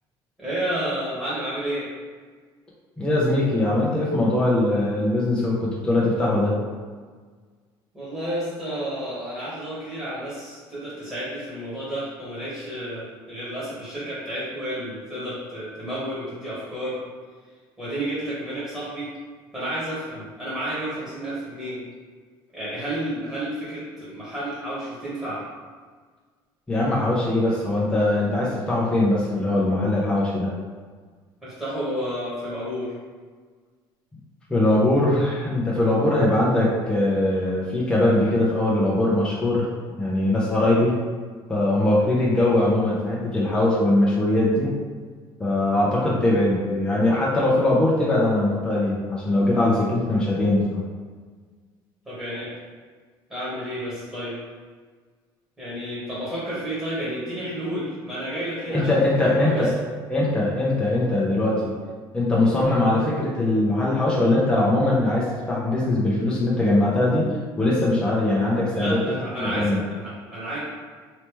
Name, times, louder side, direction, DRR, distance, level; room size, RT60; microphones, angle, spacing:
voice 1, 0.4-1.9 7.9-17.0 17.8-19.1 19.5-21.8 22.5-25.4 31.4-32.9 52.0-52.5 53.3-54.4 55.6-58.9 59.1-59.7 68.7-70.6, right 1 dB, 10° right, -10 dB, 1.4 m, -31 dB
voice 2, 3.0-6.5 26.7-30.6 34.5-39.7 40.0-41.0 41.5-44.7 45.4-50.8 58.7-59.7 60.1-61.8 62.1-67.2 67.6-69.0 69.4-69.8, left 1 dB, 10° left, -6 dB, 0.6 m, -21 dB
3.3 x 2.9 x 3.0 m, 1.6 s
cardioid pair, 130°, 10 cm